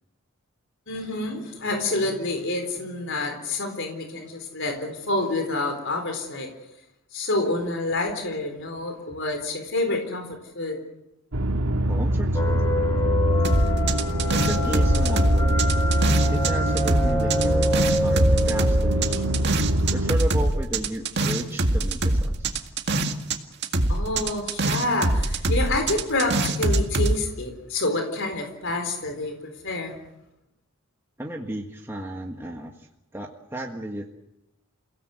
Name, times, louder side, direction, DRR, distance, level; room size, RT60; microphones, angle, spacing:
voice 1, 0.9-6.5 7.1-10.8 23.9-29.9, left 2 dB, 60° left, 5 dB, 4.2 m, -28 dB
sound 1, 11.3-20.1, equal, 85° right, 1.7 m, -24 dB
voice 2, 11.9-12.8 14.3-15.7 16.3-19.2 19.9-22.6 31.2-34.1, right 1 dB, 10° right, 1 dB, 1.6 m, -34 dB
sound 2, 12.3-19.7, left 1 dB, 15° left, 3.2 m, -28 dB
sound 3, 13.4-16.5 16.8-23.4 23.6-27.1, right 2 dB, 55° right, 2.0 m, -24 dB
29.0 x 17.0 x 8.0 m, 0.88 s
head